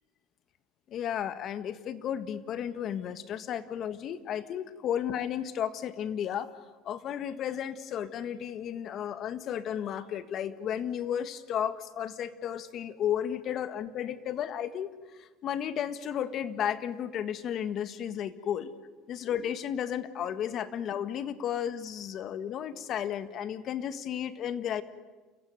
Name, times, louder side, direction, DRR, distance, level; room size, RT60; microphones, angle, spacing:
voice 1, 0.9-6.5 6.8-14.9 15.2-18.7 19.1-24.8, left 9 dB, 45° left, 12 dB, 1.6 m, -33 dB
29.5 x 15.0 x 9.4 m, 1.3 s
supercardioid pair, 125°, 0 cm